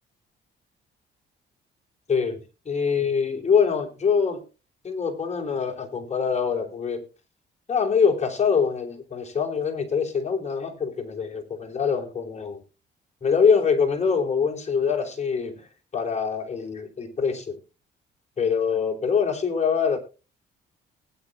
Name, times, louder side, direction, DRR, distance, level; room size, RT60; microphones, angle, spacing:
voice 1, 2.1-4.4 4.8-7.0 7.7-12.6 13.2-15.7 15.9-17.6 18.4-20.0, left 6 dB, 35° left, 3.2 m, -24 dB
19.5 x 9.3 x 2.4 m
cardioid pair, 90°, 20 cm